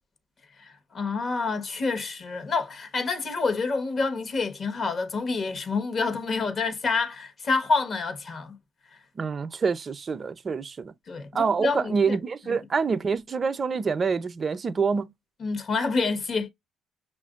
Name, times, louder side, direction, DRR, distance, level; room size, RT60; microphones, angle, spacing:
voice 1, 0.6-8.6 11.1-12.2 12.5-12.6 15.4-16.5, left 4 dB, 45° left, 1.0 m, -28 dB
voice 2, 9.2-10.9 11.3-15.1, right 5 dB, 35° right, 0.5 m, -26 dB
5.7 x 2.5 x 2.4 m
cardioid pair, 85°, 0 cm